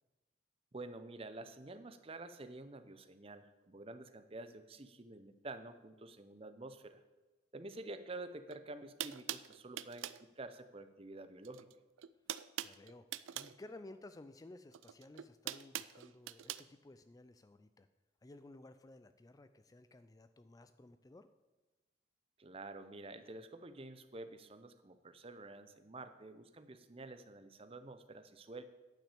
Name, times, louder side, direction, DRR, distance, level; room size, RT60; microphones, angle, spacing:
voice 1, 0.7-7.0 7.5-11.7 22.4-28.6, right 2 dB, 30° right, 11 dB, 0.7 m, -49 dB
sound 1, 8.5-8.6 9.0-10.2 11.4-11.7 12.0-13.6 14.7-16.6, right 12 dB, 85° right, 0.4 m, -43 dB
voice 2, 12.6-13.1 13.3-17.9 18.2-21.3, left 2 dB, 20° left, 11 dB, 0.3 m, -55 dB
10.0 x 6.1 x 8.4 m, 1.2 s
head